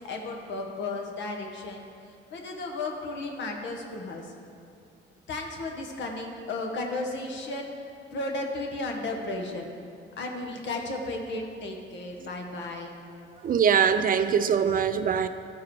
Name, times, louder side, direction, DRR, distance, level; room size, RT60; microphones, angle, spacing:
voice 1, 0.0-1.9 2.3-4.3 5.3-7.7 8.1-9.7 10.2-13.0, left 2 dB, 65° left, 2 dB, 1.2 m, -34 dB
voice 2, 13.4-15.3, right 7 dB, 45° right, 10 dB, 0.4 m, -22 dB
12.5 x 4.7 x 4.8 m, 2.4 s
cardioid pair, 90°, 20 cm